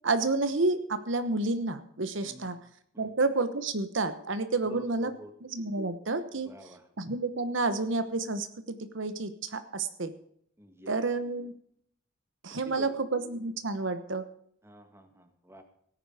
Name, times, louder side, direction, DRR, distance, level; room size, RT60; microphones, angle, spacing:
voice 1, 0.0-2.6 3.0-5.1 5.4-6.5 7.0-10.1 10.9-11.5 12.4-14.2, right 3 dB, 65° right, 11 dB, 1.1 m, -30 dB
voice 2, 4.6-5.3 6.3-6.9 10.6-11.0 12.4-12.9 14.6-15.6, equal, 10° right, 6 dB, 1.8 m, -48 dB
17.5 x 9.9 x 5.0 m, 0.66 s
head